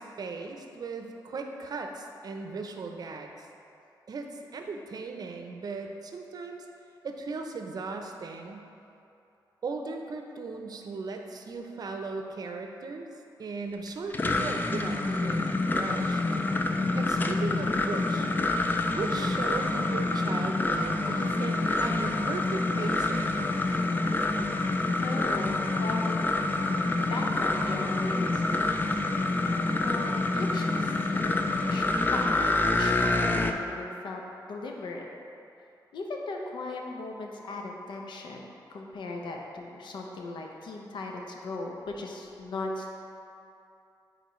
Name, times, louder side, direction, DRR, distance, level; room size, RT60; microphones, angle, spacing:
voice 1, 0.0-3.5 4.1-6.7 7.0-8.7 9.6-13.1 13.4-16.2 16.9-18.3 18.9-23.5, right 4 dB, 55° right, 3 dB, 0.6 m, -37 dB
sound 1, 13.9-33.5, left 2 dB, 25° left, 0.4 m, -27 dB
voice 2, 25.0-26.7 27.1-28.7 29.8-34.2 34.5-35.1 35.9-42.9, left 2 dB, 85° left, 1 dB, 0.7 m, -38 dB
9.0 x 4.0 x 3.1 m, 2.8 s
cardioid pair, 90°, 8 cm